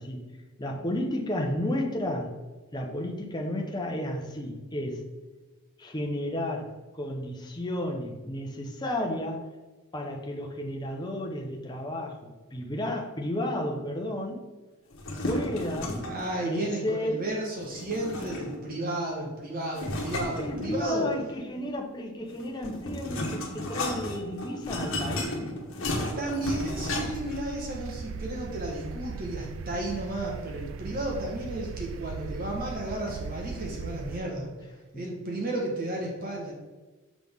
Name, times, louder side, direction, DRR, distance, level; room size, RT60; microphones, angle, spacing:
voice 1, 0.0-2.3 2.7-5.1 5.8-6.7 6.9-9.5 9.9-14.5 15.2-16.2 16.4-17.2 20.2-25.6 34.9-35.0, left 1 dB, 20° left, 0 dB, 0.9 m, -32 dB
sound 1, 14.9-16.3 17.7-18.7 19.7-21.1 22.3-27.4, left 1 dB, 75° left, 1.3 m, -33 dB
voice 2, 16.1-21.1 26.2-34.5 34.9-36.5, right 1 dB, 40° right, -1 dB, 1.2 m, -33 dB
sound 2, 26.4-34.2, right 5 dB, 65° right, 0.3 m, -39 dB
6.2 x 6.0 x 3.6 m, 1.2 s
head